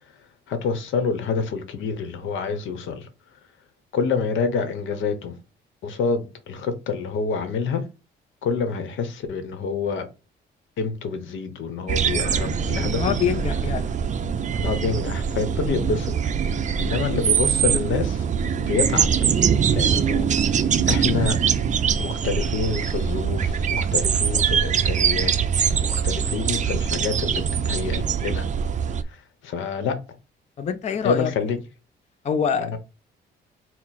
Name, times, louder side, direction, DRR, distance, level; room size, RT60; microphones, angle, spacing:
voice 1, 0.5-3.1 3.9-5.4 5.8-7.9 8.4-10.1 10.8-13.1 14.5-16.3 16.8-18.3 18.6-19.1 19.7-21.4 22.0-25.3 25.8-28.5 29.1-30.0 31.0-31.6 32.6-32.8, left 5 dB, 80° left, 0.8 m, -27 dB
sound 1, 11.9-29.0, right 7 dB, 40° right, 0.4 m, -23 dB
voice 2, 12.8-13.9 30.6-31.3 32.2-32.8, left 7 dB, 35° left, 0.4 m, -25 dB
4.4 x 2.0 x 4.0 m
cardioid pair, 90°, 20 cm